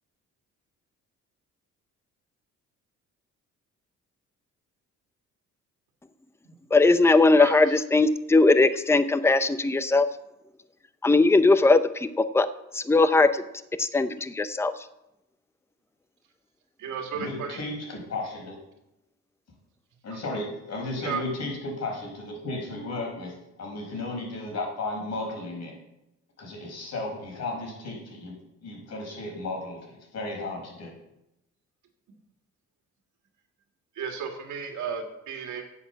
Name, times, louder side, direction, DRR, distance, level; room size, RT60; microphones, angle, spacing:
voice 1, 6.7-10.1 11.0-12.5 12.7-13.4 13.8-14.9, left 3 dB, 10° left, 12 dB, 0.6 m, -20 dB
voice 2, 7.4-7.8 16.8-17.6 20.1-20.2 21.0-21.2 33.9-35.6, right 6 dB, 75° right, 3 dB, 2.0 m, -34 dB
voice 3, 17.1-18.6 20.0-23.3 23.6-25.7 26.4-28.3 28.6-30.9, left 2 dB, 60° left, 0 dB, 5.2 m, -34 dB
9.3 x 8.4 x 6.9 m, 0.87 s
cardioid pair, 90°, 30 cm